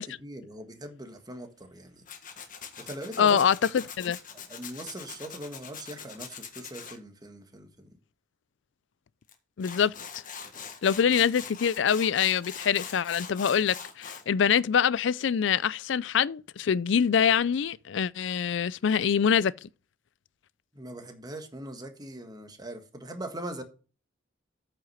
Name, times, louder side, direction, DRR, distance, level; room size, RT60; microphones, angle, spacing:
voice 1, 0.2-2.0 2.8-3.5 3.7-3.8 4.3-8.0 20.7-23.6, right 1 dB, 20° right, 1.5 m, -41 dB
Tools, 2.1-7.0 9.3-9.4 9.6-14.2, left 7 dB, 45° left, 1.6 m, -42 dB
voice 2, 3.2-3.6 4.0-4.2 9.6-10.2 10.8-19.7, left 7 dB, 70° left, 0.4 m, -25 dB
8.8 x 5.8 x 5.7 m
head